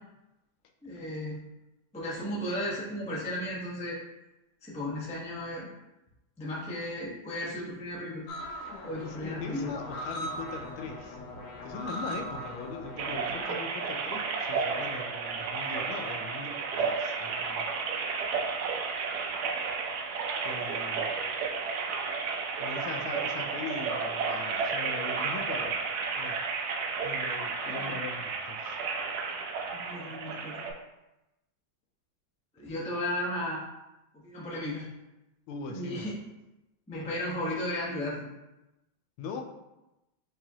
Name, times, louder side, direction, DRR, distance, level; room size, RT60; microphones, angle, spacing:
voice 1, 0.8-1.4 1.9-4.0 4.6-5.7 6.4-8.3 8.8-9.7 27.8-27.9 29.7-30.7 32.5-33.6 34.2-34.9 35.7-36.2 36.9-38.3, left 1 dB, 10° left, -6 dB, 0.4 m, -35 dB
sound 1, 8.3-13.4, equal, 70° left, 0.9 m, -39 dB
voice 2, 9.1-11.2 11.6-16.5 16.8-17.9 20.4-21.1 22.6-25.8 26.2-26.4 27.0-28.8 35.5-36.1 39.2-39.4, left 4 dB, 85° left, 4 dB, 1.4 m, -40 dB
sound 2, 13.0-30.7, right 5 dB, 80° right, 0.9 m, -32 dB
4.7 x 3.6 x 2.8 m, 0.96 s
omnidirectional pair, 2.3 m